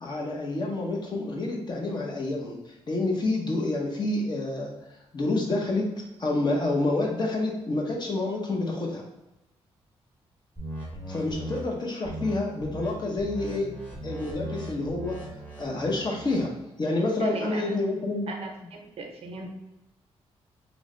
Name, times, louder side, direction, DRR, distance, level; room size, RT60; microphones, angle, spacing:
voice 1, 0.0-4.7 5.1-5.9 6.2-9.0 11.1-13.8 14.0-15.2 15.6-16.5 16.8-18.3, left 2 dB, 40° left, -1 dB, 0.9 m, -28 dB
sound 1, 10.6-11.6 12.0-12.3 12.6-12.9 13.2-16.5, right 1 dB, 15° left, 1.1 m, -38 dB
voice 2, 17.2-17.7 18.3-19.5, right 2 dB, 60° right, 2 dB, 0.6 m, -36 dB
3.1 x 2.1 x 3.7 m, 0.95 s
cardioid pair, 70°, 11 cm